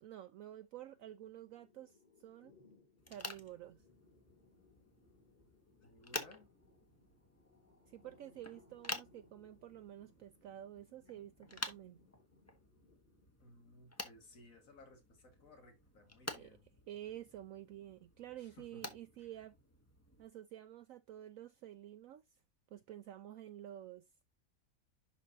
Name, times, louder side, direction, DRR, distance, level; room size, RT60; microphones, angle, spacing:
voice 1, 0.0-2.5 3.1-3.8 7.9-12.0 16.4-16.6 16.9-19.6 20.2-22.3 22.7-24.1, right 12 dB, 70° right, 0.9 m, -50 dB
sound 1, 0.7-13.3, left 3 dB, 30° left, 2.9 m, -68 dB
sound 2, 3.0-20.3, left 2 dB, 10° left, 0.8 m, -50 dB
voice 2, 5.8-6.5 13.4-16.7 18.4-19.3, left 2 dB, 60° left, 2.4 m, -60 dB
11.0 x 4.1 x 2.7 m
omnidirectional pair, 1.6 m